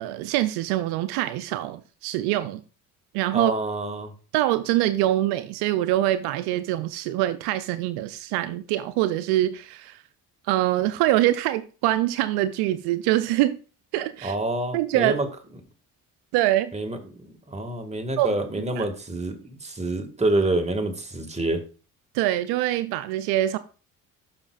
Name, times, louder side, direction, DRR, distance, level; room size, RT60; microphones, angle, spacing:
voice 1, 0.0-2.6 3.1-3.5 4.3-10.0 10.5-13.6 13.9-14.4 14.7-15.1 16.3-16.7 18.2-18.3 18.8-18.9 22.1-23.6, right 14 dB, 80° right, 0.6 m, -24 dB
voice 2, 3.3-4.1 14.2-15.3 16.7-17.0 17.2-21.6, right 2 dB, 15° right, 1.8 m, -27 dB
12.0 x 5.8 x 2.4 m
hypercardioid pair, 55°, 39 cm